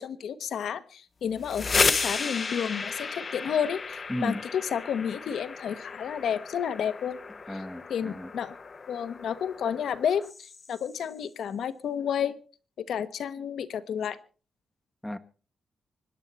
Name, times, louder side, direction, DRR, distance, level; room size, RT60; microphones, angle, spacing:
voice 1, 0.0-7.2 7.9-8.5 8.9-12.3 12.8-14.2, left 8 dB, 75° left, 1.1 m, -31 dB
sound 1, 1.3-11.0, left 4 dB, 35° left, 0.8 m, -33 dB
voice 2, 4.1-4.4 7.5-8.3 15.0-15.2, left 1 dB, 5° left, 1.1 m, -34 dB
25.5 x 10.5 x 4.2 m
wide cardioid pair, 140°, 0 cm